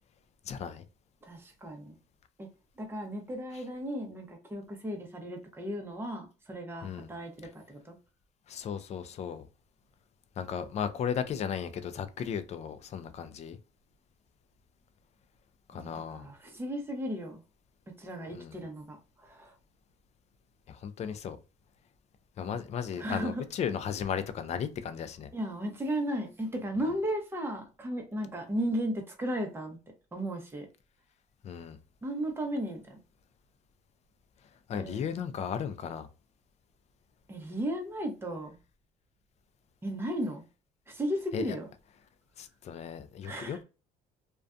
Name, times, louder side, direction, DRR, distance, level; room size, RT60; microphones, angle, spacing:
voice 1, 0.5-0.8 6.8-7.1 8.5-9.5 10.4-13.6 15.7-16.3 18.3-18.6 20.7-21.4 22.4-25.3 31.4-31.8 34.7-36.1 41.3-41.6 42.4-43.6, left 7 dB, 40° left, 0.4 m, -35 dB
voice 2, 1.2-2.0 2.4-2.5 2.8-8.0 15.7-17.4 18.0-19.0 19.2-19.5 22.4-22.6 23.0-23.4 25.3-29.8 30.1-30.7 32.0-33.0 34.7-35.1 37.3-38.6 39.8-40.4 40.9-41.7 43.2-43.6, equal, 15° right, 0.7 m, -35 dB
2.5 x 2.2 x 2.4 m
cardioid pair, 110°, 17 cm